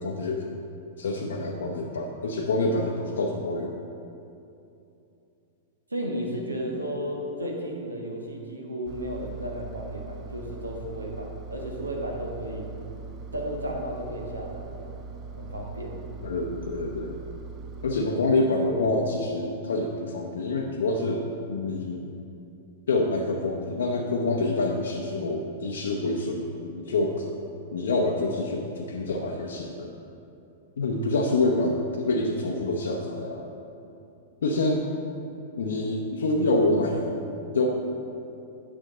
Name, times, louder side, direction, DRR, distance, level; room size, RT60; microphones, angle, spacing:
voice 1, 0.0-0.5 1.0-3.8 16.2-17.2 17.8-22.0 22.9-27.3 27.7-29.9 30.8-33.5 34.4-34.8 35.6-37.2 37.5-37.7, left 2 dB, 70° left, 0 dB, 0.6 m, -26 dB
voice 2, 5.9-12.8 13.3-15.0 15.4-16.0 17.8-18.0 30.8-31.0, equal, 85° right, 0 dB, 1.3 m, -34 dB
Engine, 8.9-18.0, right 4 dB, 35° right, 0.5 m, -40 dB
9.3 x 6.2 x 3.8 m, 2.7 s
figure-of-eight pair, 100°, 0 cm